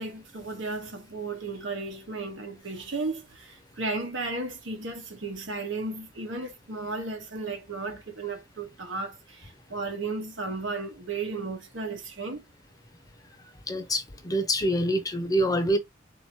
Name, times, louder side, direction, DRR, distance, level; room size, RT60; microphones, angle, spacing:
voice 1, 0.0-12.4, right 3 dB, 75° right, 1.3 m, -34 dB
voice 2, 13.7-15.8, equal, 20° left, 0.6 m, -26 dB
3.9 x 2.9 x 3.0 m
head